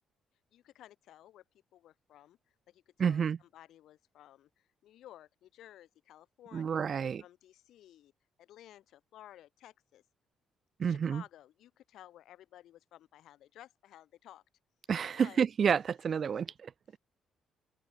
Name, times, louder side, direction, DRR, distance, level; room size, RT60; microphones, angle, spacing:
voice 1, 0.5-1.4 1.7-2.4 2.7-8.1 8.4-10.0 10.8-14.4 15.2-15.4 16.3-16.4, left 12 dB, 80° left, 3.8 m, -55 dB
voice 2, 3.0-3.4 6.5-7.2 10.8-11.2 14.9-16.7, right 7 dB, 50° right, 0.4 m, -29 dB
open air
cardioid pair, 90°, 0 cm